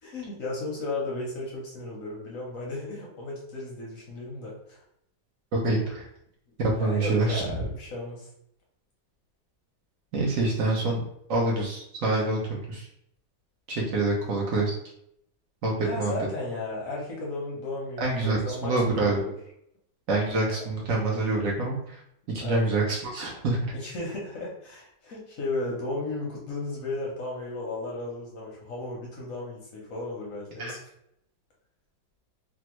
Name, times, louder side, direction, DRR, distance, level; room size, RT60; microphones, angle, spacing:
voice 1, 0.0-4.8 6.8-8.3 15.8-18.7 19.0-19.3 20.6-20.7 22.4-22.6 23.7-30.8, left 2 dB, 65° left, -3 dB, 0.8 m, -34 dB
voice 2, 5.5-6.1 6.6-7.4 10.1-11.0 11.3-12.9 13.7-14.8 15.6-16.1 18.0-19.2 20.1-22.0 22.3-23.6 30.6-30.7, right 2 dB, 80° right, -2 dB, 0.7 m, -26 dB
3.4 x 2.1 x 2.9 m, 0.74 s
omnidirectional pair, 2.2 m